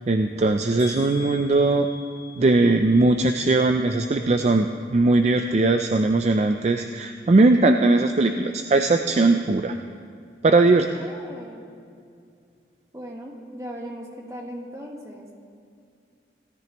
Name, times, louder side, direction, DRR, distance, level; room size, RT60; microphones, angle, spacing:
voice 1, 0.1-1.9 2.4-9.8 10.4-10.9, right 2 dB, 40° right, 6 dB, 0.4 m, -19 dB
sound 1, 0.8-4.8 5.1-5.7 6.1-6.3 6.6-6.7, left 6 dB, 15° left, 3.6 m, -45 dB
voice 2, 10.6-11.6 12.9-15.3, equal, 15° right, 0 dB, 1.3 m, -38 dB
17.0 x 13.5 x 3.0 m, 2.4 s
head